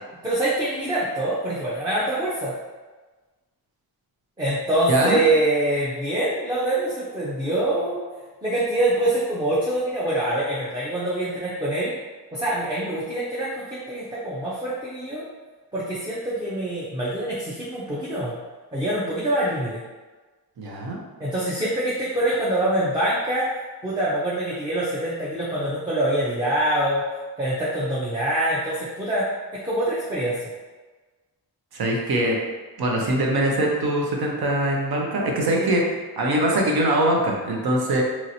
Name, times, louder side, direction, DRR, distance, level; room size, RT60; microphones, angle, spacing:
voice 1, 0.2-2.5 4.4-8.0 8.4-11.9 12.3-15.2 15.7-18.3 18.7-19.8 21.2-23.5 23.8-27.0 27.4-29.3 29.6-30.3 35.5-35.6, right 1 dB, 10° right, -8 dB, 0.5 m, -25 dB
voice 2, 20.6-21.0 31.7-32.4 32.8-35.8 36.2-38.0, right 1 dB, 65° right, -1 dB, 0.7 m, -22 dB
3.0 x 2.8 x 2.7 m, 1.3 s
wide cardioid pair, 140°, 40 cm